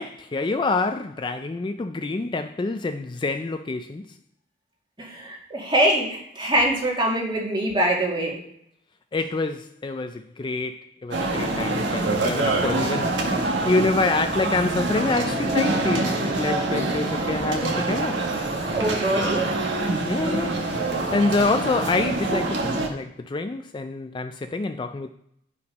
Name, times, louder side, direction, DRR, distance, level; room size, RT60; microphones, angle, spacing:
voice 1, 0.0-4.1 9.1-13.1 13.6-18.3 20.1-20.6 21.1-25.1, left 3 dB, 25° left, 0.3 m, -26 dB
voice 2, 5.0-8.4 18.7-19.5, right 1 dB, 25° right, 2.1 m, -23 dB
sound 1, 11.1-22.9, right 2 dB, 65° right, 1.5 m, -25 dB
9.4 x 5.8 x 5.2 m
head